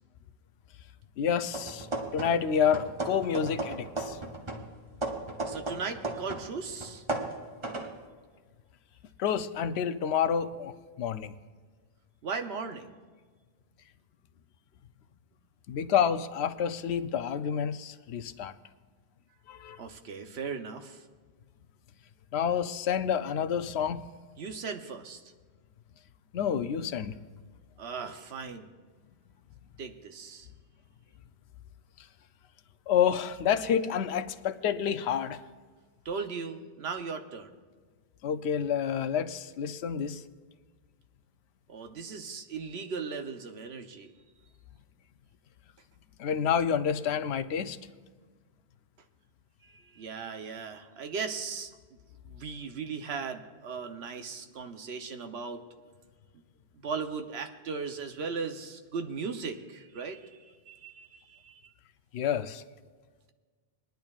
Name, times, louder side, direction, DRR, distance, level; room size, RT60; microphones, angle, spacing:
voice 1, 1.2-1.9 2.1-4.2 9.2-11.4 15.7-18.5 19.5-19.8 22.3-24.0 26.3-27.1 32.9-35.4 38.2-40.2 46.2-47.8 62.1-62.6, left 8 dB, 85° left, 12 dB, 0.9 m, -29 dB
sound 1, 1.5-2.5 2.7-6.5 6.8-8.0, right 2 dB, 30° right, 1.0 m, -35 dB
voice 2, 5.5-7.0 12.2-12.9 19.7-21.0 24.4-25.2 27.8-28.7 29.8-30.5 36.0-37.5 41.7-44.1 49.6-51.7 52.3-55.6 56.7-61.6, right 5 dB, 80° right, 6 dB, 1.1 m, -37 dB
23.0 x 10.5 x 2.4 m, 1.5 s
omnidirectional pair, 1.1 m